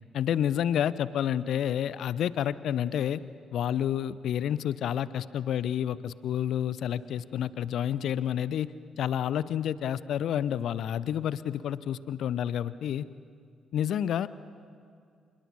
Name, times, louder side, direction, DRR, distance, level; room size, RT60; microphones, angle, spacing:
voice 1, 0.1-3.2 3.5-8.7 9.0-13.1 13.7-14.3, left 10 dB, 60° left, 18 dB, 0.6 m, -29 dB
27.5 x 20.5 x 7.3 m, 2.3 s
figure-of-eight pair, 40°, 0 cm